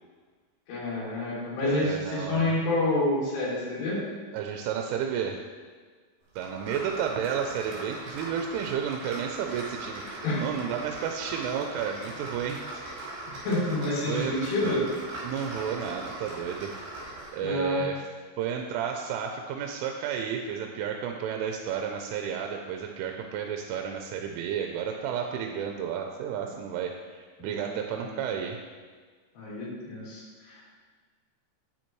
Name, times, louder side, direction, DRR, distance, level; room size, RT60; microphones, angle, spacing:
voice 1, 0.7-4.0 10.2-10.4 13.3-14.8 17.4-17.8 27.4-28.2 29.4-30.7, left 2 dB, 75° left, -8 dB, 4.7 m, -29 dB
voice 2, 1.6-2.6 4.3-5.4 6.4-12.9 14.1-14.4 14.6-14.8 15.2-16.7 17.3-18.0 18.4-28.6, right 8 dB, 85° right, 3 dB, 3.0 m, -32 dB
sound 1, 6.4-17.5, right 2 dB, 55° right, 3.7 m, -40 dB
9.5 x 7.2 x 3.0 m, 1.5 s
omnidirectional pair, 5.7 m